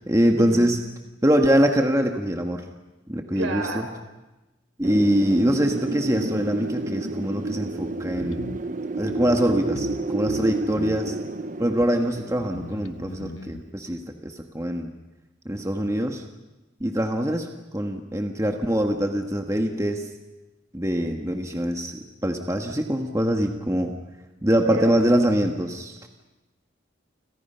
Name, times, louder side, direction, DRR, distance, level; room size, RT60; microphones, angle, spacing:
voice 1, 0.1-0.8 1.2-2.6 3.1-3.9 4.8-8.4 9.0-11.2 11.6-14.9 15.4-16.2 16.8-17.5 17.7-20.1 20.7-24.0 24.4-26.0, equal, 15° right, 3 dB, 1.6 m, -23 dB
voice 2, 3.3-3.9 24.6-24.9, right 2 dB, 80° right, 5 dB, 5.4 m, -29 dB
Wind, 4.8-13.5, right 2 dB, 40° right, 0.9 m, -30 dB
sound 1, 8.1-8.6 9.1-9.2 9.7-10.0 10.3-11.1 11.8-11.9 12.4-13.6, left 2 dB, 85° left, 1.0 m, -38 dB
30.0 x 27.0 x 5.7 m, 1.0 s
head